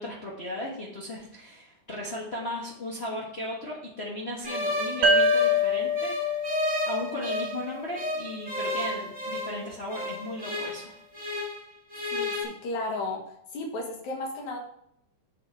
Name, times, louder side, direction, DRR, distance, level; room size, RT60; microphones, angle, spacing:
voice 1, 0.0-6.1 6.8-11.0, left 1 dB, 55° left, -4 dB, 0.7 m, -36 dB
sound 1, 4.4-7.6 7.9-11.6 11.9-12.4, left 1 dB, 5° right, 1.7 m, -32 dB
sound 2, 5.0-8.5, left 2 dB, 85° right, 2.4 m, -26 dB
voice 2, 12.1-13.2 13.5-14.6, left 2 dB, 70° left, 1 dB, 2.9 m, -33 dB
8.0 x 5.5 x 4.9 m, 0.72 s
omnidirectional pair, 3.5 m